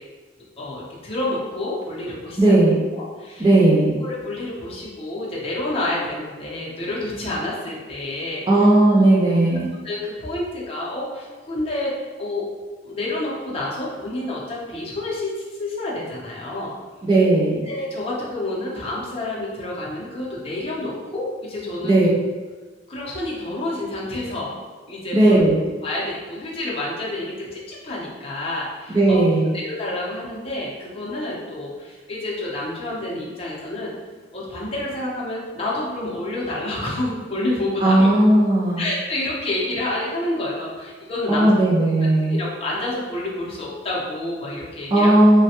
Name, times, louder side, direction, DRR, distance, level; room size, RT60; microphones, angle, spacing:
voice 1, 0.6-2.5 2.9-3.5 4.0-8.7 9.8-12.5 12.8-16.8 17.6-21.9 22.9-24.6 24.9-25.4 25.8-29.2 29.5-33.9 34.3-38.1 38.8-41.5 41.8-41.9 42.3-45.1, left 1 dB, 30° left, -6 dB, 0.7 m, -29 dB
voice 2, 2.4-2.8 3.4-3.9 8.5-9.7 17.0-17.6 21.8-22.1 25.1-25.6 28.9-29.5 37.8-38.8 41.3-42.4 44.9-45.4, right 1 dB, 25° right, -8 dB, 0.5 m, -16 dB
3.1 x 2.2 x 2.8 m, 1.3 s
head